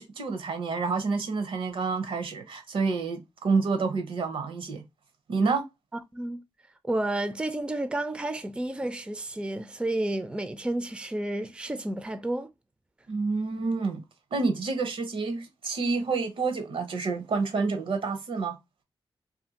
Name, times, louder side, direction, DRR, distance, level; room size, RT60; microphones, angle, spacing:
voice 1, 0.0-4.8 5.3-5.7 13.1-14.0 14.3-18.6, right 4 dB, 70° right, 0.7 m, -28 dB
voice 2, 6.1-6.4 6.8-12.5, right 1 dB, 10° right, 0.4 m, -31 dB
2.5 x 2.4 x 2.7 m
cardioid pair, 65°, 9 cm